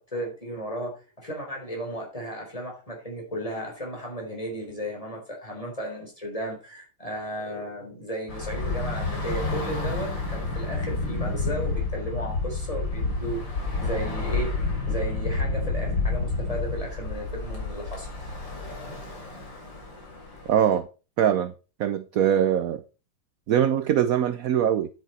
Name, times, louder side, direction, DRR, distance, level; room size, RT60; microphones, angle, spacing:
voice 1, 0.0-14.5 14.9-18.1, right 1 dB, 15° left, 4.1 m, -34 dB
Bus / Traffic noise roadway noise, 8.3-20.8, left 3 dB, 65° left, 3.8 m, -30 dB
voice 2, 20.5-20.9 21.2-21.5 21.8-22.8 23.5-24.9, right 9 dB, 65° right, 0.8 m, -22 dB
10.0 x 9.0 x 4.3 m
omnidirectional pair, 2.2 m